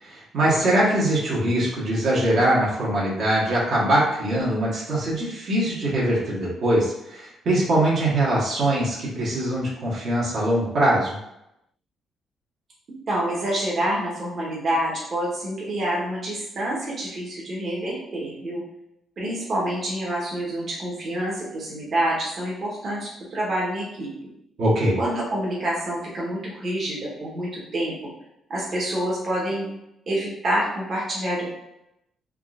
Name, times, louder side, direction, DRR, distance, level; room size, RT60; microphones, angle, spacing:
voice 1, 0.0-11.2 24.6-25.0, right 1 dB, 65° right, -6 dB, 1.1 m, -22 dB
voice 2, 13.1-18.6 19.2-24.1 25.0-28.1 28.5-29.7 30.1-31.5, right 1 dB, 50° right, -5 dB, 1.0 m, -27 dB
3.6 x 2.5 x 2.4 m, 0.83 s
cardioid pair, 90°, 0 cm